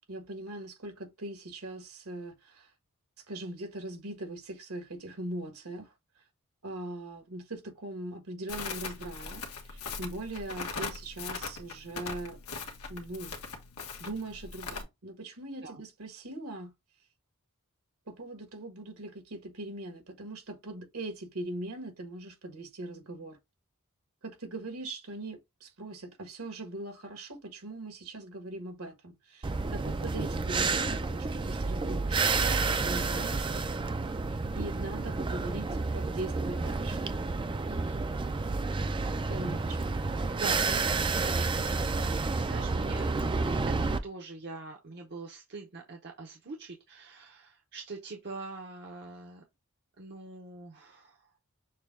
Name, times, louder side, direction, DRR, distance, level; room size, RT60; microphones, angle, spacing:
voice 1, 0.1-2.7 3.3-6.2 6.6-12.4 12.9-13.3 14.0-16.7 18.1-23.4 24.2-33.6 34.2-37.1 39.3-40.1, right 2 dB, 75° right, 1.5 m, -41 dB
Crackle, 8.5-14.8, left 4 dB, 85° left, 1.2 m, -40 dB
sound 1, 29.4-44.0, right 3 dB, 20° right, 0.4 m, -30 dB
voice 2, 37.7-38.0 40.4-43.3 43.7-49.4 50.0-51.2, right 3 dB, 50° right, 0.8 m, -44 dB
6.5 x 2.2 x 3.5 m
head